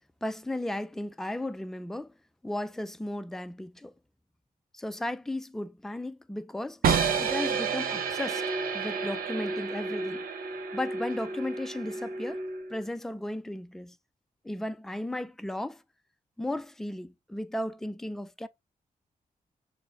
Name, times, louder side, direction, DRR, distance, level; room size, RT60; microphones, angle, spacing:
voice 1, 0.2-2.1 2.4-3.9 4.7-6.8 7.2-8.4 8.7-10.2 10.7-12.4 12.7-14.0 14.4-15.8 16.4-18.5, left 1 dB, 5° left, 0.3 m, -35 dB
sound 1, 6.8-12.8, right 5 dB, 80° right, 0.6 m, -30 dB
6.1 x 2.1 x 2.6 m
cardioid pair, 75°, 15 cm